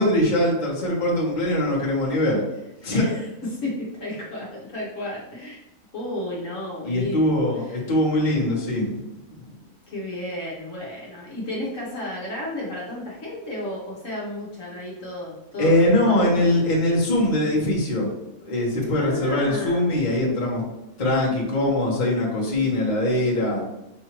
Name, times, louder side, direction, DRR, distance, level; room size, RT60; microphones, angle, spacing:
voice 1, 0.0-2.4 2.8-3.1 6.8-8.9 15.6-18.1 18.4-20.6 21.0-23.6, left 1 dB, 35° left, -5 dB, 1.2 m, -22 dB
voice 2, 2.8-3.2 3.5-5.6 5.9-7.8 9.9-16.5 19.0-19.9, left 1 dB, 60° left, -4 dB, 1.4 m, -33 dB
5.6 x 2.7 x 3.0 m, 0.91 s
omnidirectional pair, 1.6 m